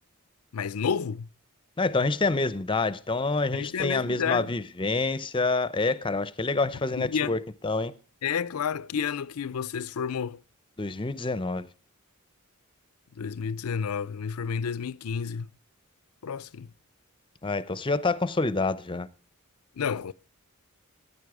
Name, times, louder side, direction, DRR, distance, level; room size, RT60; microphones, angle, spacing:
voice 1, 0.5-1.3 3.5-4.5 6.9-7.4 8.2-10.4 13.2-15.5 16.2-16.7 19.8-20.1, left 6 dB, 90° left, 0.5 m, -30 dB
voice 2, 1.8-7.9 10.8-11.7 17.4-19.1, left 3 dB, 25° left, 0.6 m, -27 dB
14.5 x 9.8 x 4.8 m
head